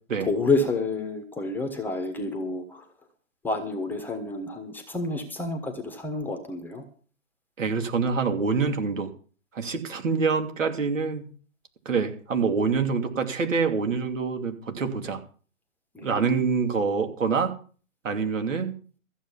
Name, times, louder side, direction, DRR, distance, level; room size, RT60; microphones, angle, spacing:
voice 1, 0.2-2.8 3.4-6.8 15.9-16.5, left 3 dB, 5° left, 4 dB, 1.3 m, -29 dB
voice 2, 7.6-9.1 9.5-11.3 11.8-15.2 16.0-17.5 18.0-18.7, right 5 dB, 65° right, 6 dB, 2.9 m, -26 dB
14.5 x 7.9 x 7.3 m, 0.41 s
figure-of-eight pair, 140°, 40 cm